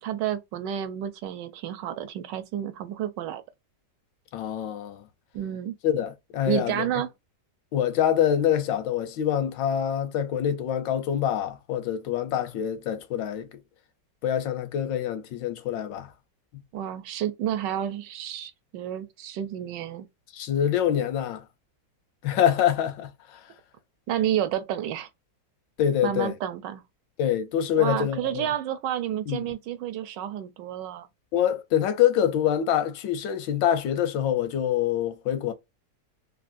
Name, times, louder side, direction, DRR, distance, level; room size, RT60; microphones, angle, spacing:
voice 1, 0.0-3.4 5.3-5.7 6.5-7.1 16.7-20.1 24.1-25.1 26.0-26.8 27.8-31.1, right 10 dB, 80° right, 1.2 m, -30 dB
voice 2, 4.3-5.0 5.8-6.8 7.7-13.5 14.2-16.1 20.3-21.4 22.2-23.1 25.8-26.3 27.2-28.4 29.3-29.4 31.3-35.5, left 10 dB, 85° left, 1.3 m, -25 dB
3.4 x 2.5 x 2.4 m
omnidirectional pair, 1.9 m